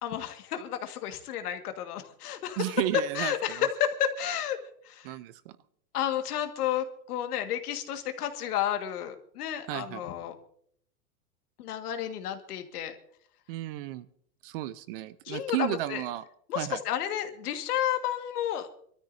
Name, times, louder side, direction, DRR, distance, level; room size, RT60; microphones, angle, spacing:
voice 1, 0.0-2.7 3.2-4.6 4.8-5.1 5.9-10.4 11.6-13.0 15.3-16.0 16.5-18.7, left 10 dB, 75° left, 7 dB, 1.8 m, -31 dB
voice 2, 2.6-3.6 5.0-5.5 9.7-10.0 13.5-14.1 14.4-16.2 16.5-16.8, right 15 dB, 40° right, 16 dB, 0.5 m, -33 dB
27.0 x 13.0 x 2.6 m, 0.64 s
supercardioid pair, 150°, 45 cm